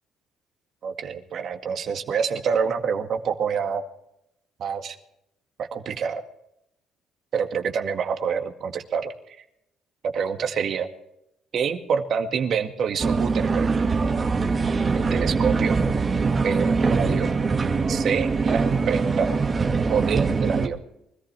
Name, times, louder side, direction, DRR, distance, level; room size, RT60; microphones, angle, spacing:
voice 1, 0.8-3.8 4.6-5.0 5.7-6.2 7.3-9.1 10.1-10.9 11.5-13.7 14.9-15.8 16.4-17.3 17.9-19.3 19.9-20.8, right 6 dB, 60° right, 4 dB, 2.0 m, -26 dB
sound 1, 13.0-20.7, right 4 dB, 30° right, 2.0 m, -23 dB
24.5 x 14.0 x 3.4 m, 0.79 s
cardioid pair, 90°, 0 cm